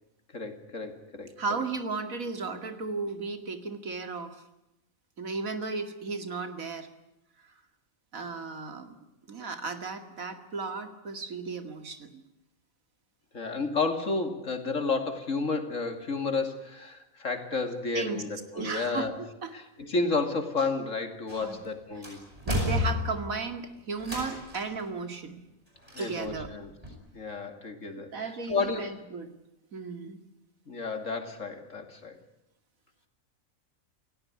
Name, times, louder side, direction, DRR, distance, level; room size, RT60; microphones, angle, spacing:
voice 1, 0.3-1.3 13.3-19.2 19.5-22.3 25.9-26.7 27.1-29.0 30.7-32.2, left 4 dB, 65° left, 7 dB, 2.9 m, -31 dB
voice 2, 1.4-4.4 5.2-6.9 8.1-8.9 9.3-12.2 17.9-18.2 18.5-19.1 19.4-19.5 21.4-21.6 22.5-25.4 26.0-26.5 28.1-29.3 29.7-30.2, right 4 dB, 85° right, 7 dB, 2.7 m, -35 dB
sound 1, 21.3-21.7 22.0-23.4 24.0-24.8 25.9-26.5 26.8-26.9, left 2 dB, 25° right, 8.2 m, -32 dB
29.0 x 16.5 x 9.8 m, 0.90 s
omnidirectional pair, 1.4 m